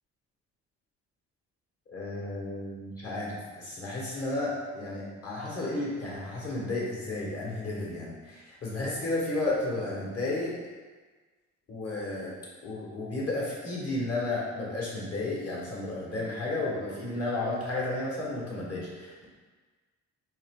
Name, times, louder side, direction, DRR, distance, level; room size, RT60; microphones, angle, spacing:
voice 1, 1.9-10.5 11.7-12.3 12.6-19.3, left 2 dB, 55° left, -5 dB, 1.5 m, -33 dB
3.9 x 3.0 x 3.7 m, 1.4 s
cardioid pair, 90°, 30 cm